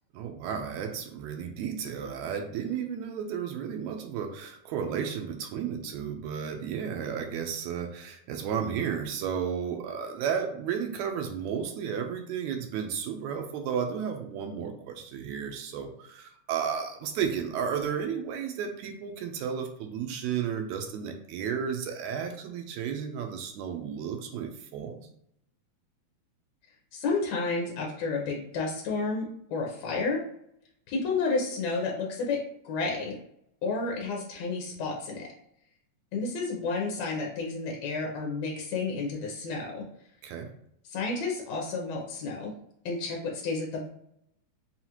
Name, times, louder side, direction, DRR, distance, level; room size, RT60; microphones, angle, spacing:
voice 1, 0.1-25.0 40.2-40.5, right 7 dB, 80° right, 4 dB, 1.9 m, -33 dB
voice 2, 26.9-30.2 30.9-33.2 33.6-35.3 36.1-39.8 40.9-42.5 42.9-43.9, left 3 dB, 75° left, -1 dB, 2.0 m, -31 dB
5.6 x 2.4 x 2.9 m, 0.71 s
omnidirectional pair, 3.3 m